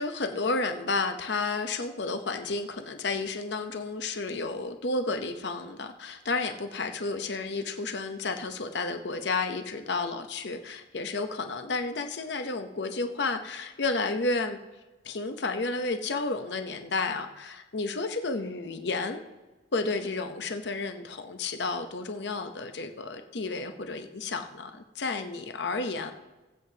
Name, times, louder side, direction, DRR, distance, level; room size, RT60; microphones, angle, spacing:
voice 1, 0.0-14.6 15.0-19.2 19.7-26.1, left 3 dB, 65° left, 7 dB, 0.8 m, -31 dB
20.5 x 8.0 x 2.8 m, 1.2 s
head